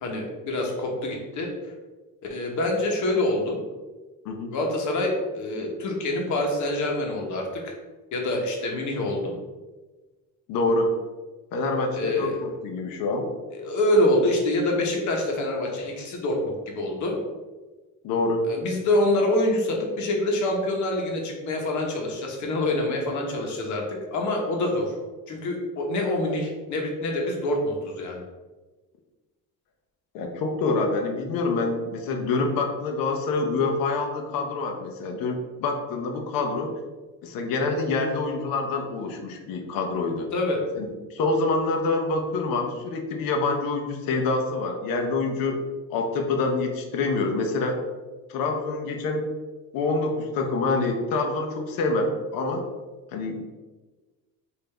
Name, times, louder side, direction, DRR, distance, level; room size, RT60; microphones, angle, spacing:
voice 1, 0.0-1.5 2.3-3.6 4.5-7.7 8.1-9.4 11.9-12.4 13.5-17.2 18.4-23.8 24.1-25.0 25.3-28.2 40.3-40.6, left 1 dB, 60° left, 0 dB, 1.1 m, -26 dB
voice 2, 10.5-10.9 11.5-13.3 18.0-18.4 30.1-36.7 37.2-40.3 40.7-45.6 45.9-47.8 48.3-49.2 49.7-52.6 53.1-53.5, left 3 dB, 85° left, 4 dB, 0.8 m, -26 dB
5.4 x 2.7 x 3.3 m, 1.3 s
cardioid pair, 150°, 34 cm